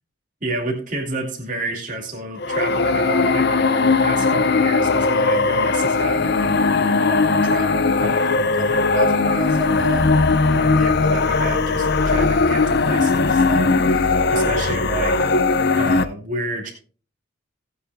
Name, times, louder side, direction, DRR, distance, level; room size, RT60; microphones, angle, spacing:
voice 1, 0.4-10.2 10.4-15.2 15.7-16.7, right 2 dB, 40° right, 0 dB, 2.4 m, -30 dB
sound 1, 2.4-16.0, left 3 dB, 55° left, 0.7 m, -18 dB
19.0 x 8.2 x 2.3 m, 0.39 s
head